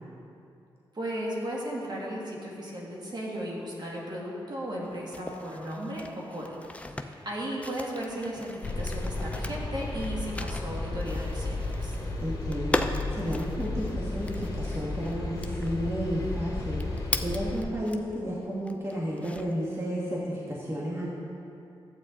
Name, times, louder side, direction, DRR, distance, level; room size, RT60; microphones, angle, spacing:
voice 1, 0.9-6.0 6.3-11.9, right 1 dB, 45° right, -4 dB, 2.2 m, -36 dB
sound 1, 4.8-18.2 18.6-19.7, left 1 dB, 15° left, 0.5 m, -38 dB
sound 2, 8.6-17.6, left 2 dB, 40° left, 2.4 m, -33 dB
voice 2, 12.2-12.9 13.1-21.1, equal, 25° right, -5 dB, 1.6 m, -32 dB
12.0 x 8.5 x 4.0 m, 2.6 s
cardioid pair, 65°, 10 cm